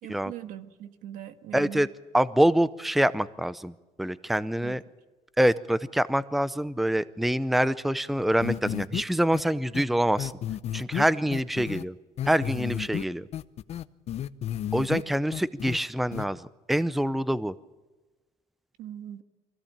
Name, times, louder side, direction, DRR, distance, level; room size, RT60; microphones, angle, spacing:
voice 1, 0.0-1.9 4.6-4.8 18.8-19.2, right 11 dB, 90° right, 10 dB, 1.6 m, -41 dB
voice 2, 1.5-1.9 2.1-4.8 5.4-10.3 10.7-11.9 12.3-13.3 14.7-17.5, right 1 dB, ahead, 17 dB, 0.6 m, -25 dB
sound 1, 8.4-9.0 9.3-9.4 9.7-9.8 10.2-11.8 12.2-13.0 13.3-15.0 15.3-15.8 16.1-16.2, left 11 dB, 55° left, 0.7 m, -32 dB
24.0 x 16.5 x 8.7 m, 1.2 s
cardioid pair, 130°, 13 cm